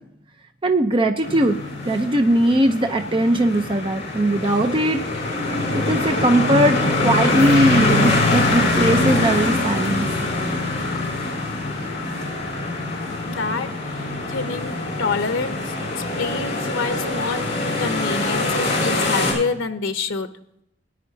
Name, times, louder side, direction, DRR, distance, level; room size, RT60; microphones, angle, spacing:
voice 1, 0.6-1.6 1.8-5.0 5.7-10.1, right 1 dB, 25° right, 5 dB, 0.7 m, -19 dB
sound 1, 1.2-19.3, left 2 dB, 35° left, 5.1 m, -23 dB
voice 2, 13.2-15.6 16.0-20.3, left 4 dB, 80° left, 9 dB, 0.8 m, -27 dB
18.5 x 9.7 x 2.8 m, 0.76 s
head